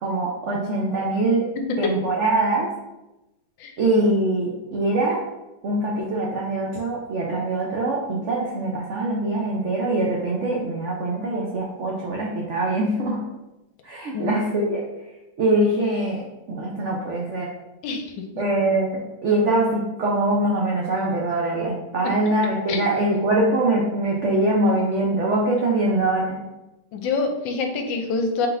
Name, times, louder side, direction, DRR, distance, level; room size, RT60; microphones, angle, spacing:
voice 1, 0.0-1.5 1.8-2.7 3.8-5.2 5.6-13.2 13.8-14.8 15.4-16.2 16.5-17.5 18.4-26.4, right 2 dB, 85° right, -3 dB, 0.6 m, -23 dB
voice 2, 1.6-1.9 3.6-3.7 14.1-14.4 17.8-18.3 22.7-22.8 26.9-28.5, left 4 dB, 75° left, 5 dB, 1.3 m, -26 dB
4.4 x 4.0 x 2.6 m, 0.99 s
omnidirectional pair, 2.1 m